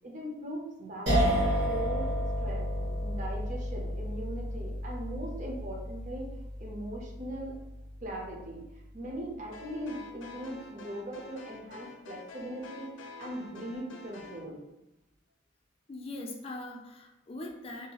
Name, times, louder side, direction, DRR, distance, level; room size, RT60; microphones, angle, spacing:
voice 1, 0.0-1.4 1.6-2.1 2.4-6.3 6.6-7.6 8.0-8.6 8.9-14.6, right 1 dB, 40° right, -1 dB, 0.5 m, -40 dB
sound 1, 1.1-8.0, equal, 75° right, 1.2 m, -31 dB
sound 2, 9.5-14.4, left 3 dB, 90° left, 0.5 m, -47 dB
voice 2, 15.9-17.9, left 2 dB, 30° left, 1 dB, 0.4 m, -41 dB
2.6 x 2.3 x 2.8 m, 0.91 s
head